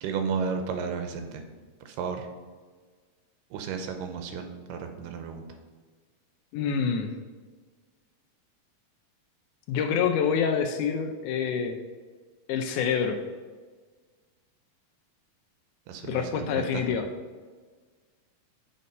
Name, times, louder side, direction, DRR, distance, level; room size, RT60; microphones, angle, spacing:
voice 1, 0.0-1.4 1.9-2.3 3.5-5.4 15.9-16.8, right 6 dB, 90° right, 6 dB, 2.4 m, -33 dB
voice 2, 6.5-7.1 9.7-11.8 12.5-13.2 16.0-17.1, left 6 dB, 80° left, 5 dB, 1.9 m, -26 dB
6.7 x 4.2 x 5.3 m, 1.4 s
omnidirectional pair, 3.9 m